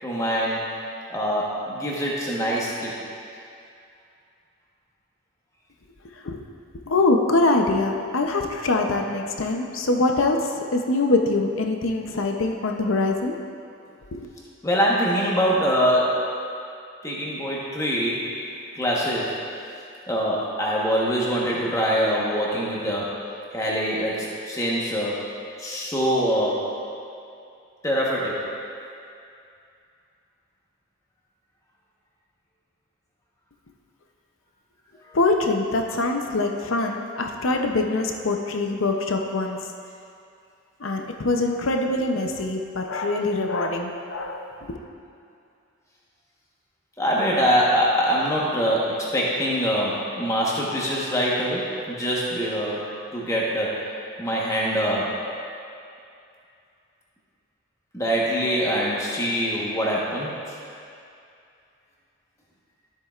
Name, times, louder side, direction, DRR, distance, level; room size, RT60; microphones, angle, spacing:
voice 1, 0.0-0.6 1.1-3.0 14.6-16.4 17.0-18.3 18.7-19.4 20.1-23.1 23.5-25.2 25.6-26.7 27.8-28.5 35.0-35.2 47.0-53.8 54.2-55.2 57.9-60.6, equal, 15° left, -5 dB, 1.2 m, -24 dB
voice 2, 6.9-13.4 14.1-14.3 35.1-39.6 40.8-44.8, left 2 dB, 75° left, 3 dB, 0.7 m, -24 dB
12.5 x 7.5 x 2.5 m, 2.5 s
head